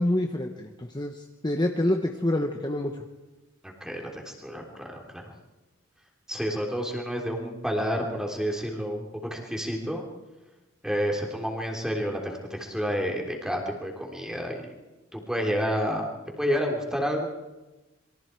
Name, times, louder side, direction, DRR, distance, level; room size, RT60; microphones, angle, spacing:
voice 1, 0.0-2.9, left 1 dB, 20° left, 3 dB, 1.1 m, -27 dB
voice 2, 3.6-5.3 6.3-10.1 10.8-14.6 15.1-16.1 16.4-17.3, equal, 5° right, 1 dB, 3.5 m, -30 dB
27.5 x 23.5 x 4.7 m, 1.1 s
head